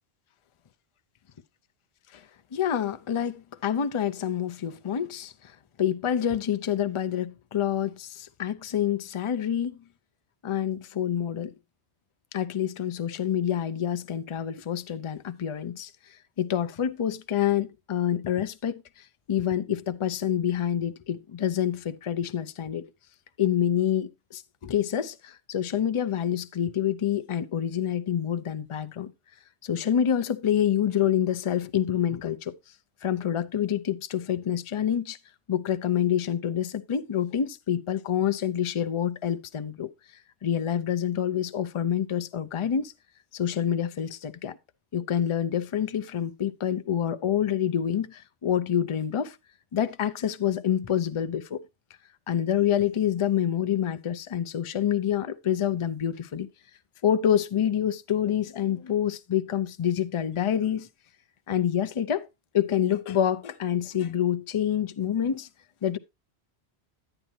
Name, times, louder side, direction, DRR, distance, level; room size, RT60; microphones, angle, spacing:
voice 1, 2.5-9.8 10.4-11.5 12.3-15.9 16.4-22.8 23.4-29.1 29.6-32.5 33.0-35.2 35.5-39.9 40.4-42.9 43.3-44.6 44.9-49.4 49.7-51.6 52.3-56.5 57.0-60.9 61.5-62.3 62.5-65.5 65.8-66.0, left 9 dB, 40° left, 0.5 m, -27 dB
11.0 x 9.0 x 2.8 m
omnidirectional pair, 1.1 m